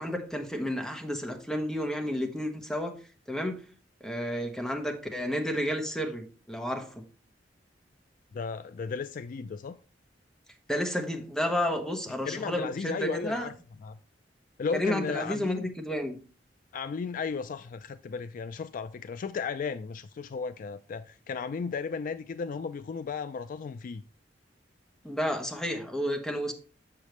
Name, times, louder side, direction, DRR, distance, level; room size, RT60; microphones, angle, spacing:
voice 1, 0.0-2.9 3.3-3.6 4.0-7.0 10.7-13.5 14.7-16.2 25.0-26.5, equal, 5° left, 1.0 m, -31 dB
voice 2, 8.3-9.8 12.3-13.5 13.8-14.0 14.6-15.7 16.7-24.0, left 5 dB, 45° left, 0.3 m, -35 dB
7.2 x 6.7 x 3.1 m
head